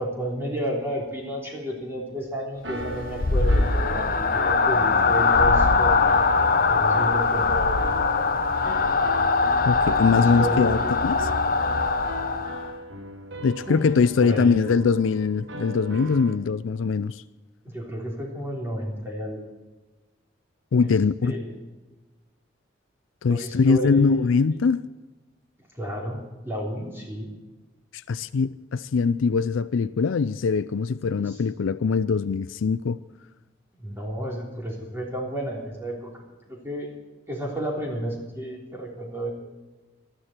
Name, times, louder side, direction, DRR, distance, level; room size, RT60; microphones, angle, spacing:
voice 1, 0.0-6.1 6.7-8.4 10.1-10.9 13.7-13.8 14.2-14.7 17.6-19.4 20.8-20.9 21.2-21.5 23.3-24.5 25.8-27.3 31.1-31.4 33.8-36.1 36.5-36.9 37.3-39.3, right 1 dB, 15° right, 3.4 m, -32 dB
sound 1, 2.6-16.4, equal, 65° right, 1.6 m, -38 dB
sound 2, 2.8-12.8, left 4 dB, 45° left, 0.8 m, -22 dB
voice 2, 9.6-11.3 13.4-17.2 20.7-21.3 23.2-24.9 27.9-33.0, left 5 dB, 85° left, 0.4 m, -22 dB
19.5 x 13.0 x 4.4 m
head